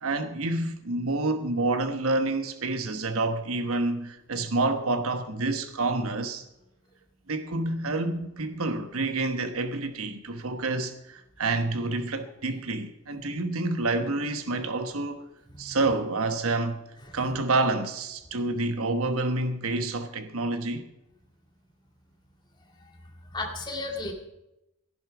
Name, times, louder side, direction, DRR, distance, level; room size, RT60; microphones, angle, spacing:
voice 1, 0.0-6.4 7.3-15.2 15.6-16.8 17.1-20.9, right 2 dB, 80° right, 1.2 m, -28 dB
voice 2, 23.3-24.1, left 2 dB, 20° left, 2.1 m, -35 dB
15.0 x 11.0 x 4.9 m
head